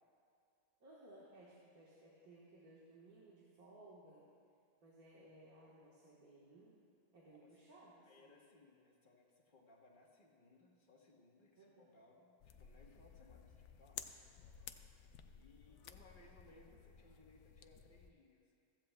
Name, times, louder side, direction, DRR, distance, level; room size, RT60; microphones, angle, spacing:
voice 1, 0.8-4.3 4.8-6.8 7.1-8.3 11.5-11.9 15.7-15.8, right 1 dB, 65° right, -5 dB, 1.9 m, -61 dB
voice 2, 8.0-18.5, left 2 dB, 35° left, -1 dB, 1.3 m, -66 dB
sound 1, 12.4-18.1, left 8 dB, 70° left, 0.7 m, -55 dB
15.0 x 14.5 x 2.2 m, 2.4 s
omnidirectional pair, 1.7 m